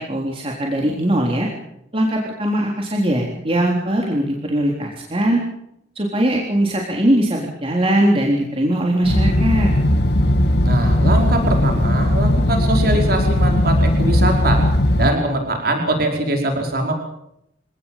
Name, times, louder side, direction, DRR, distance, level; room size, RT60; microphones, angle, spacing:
voice 1, 0.0-1.5 1.9-5.4 6.0-9.7, right 1 dB, 35° right, -1 dB, 3.8 m, -20 dB
sound 1, 9.0-15.1, left 1 dB, 65° left, 2.0 m, -17 dB
voice 2, 10.6-14.6 15.0-16.9, right 1 dB, 60° right, 2 dB, 5.1 m, -22 dB
25.5 x 19.0 x 7.5 m, 0.78 s
head